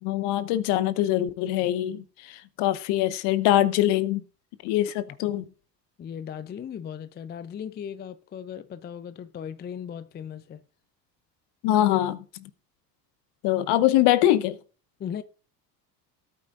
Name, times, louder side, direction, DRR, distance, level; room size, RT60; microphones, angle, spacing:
voice 1, 0.0-4.2 4.6-5.4 11.6-12.5 13.4-14.6, left 13 dB, 55° left, 1.0 m, -23 dB
voice 2, 6.0-10.6 15.0-15.2, left 8 dB, 20° left, 0.5 m, -37 dB
17.5 x 8.7 x 2.5 m
hypercardioid pair, 75°, 49 cm